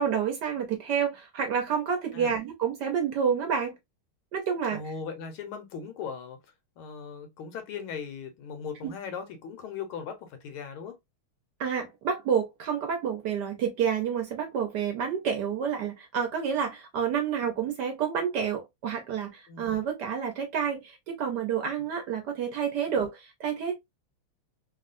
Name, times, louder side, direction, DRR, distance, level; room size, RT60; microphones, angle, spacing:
voice 1, 0.0-3.7 4.3-4.8 11.6-23.8, right 7 dB, 65° right, 1.1 m, -29 dB
voice 2, 4.7-6.4 6.8-11.0 19.5-19.7 22.8-22.9, left 6 dB, 80° left, 1.6 m, -38 dB
3.6 x 2.3 x 2.5 m
omnidirectional pair, 2.3 m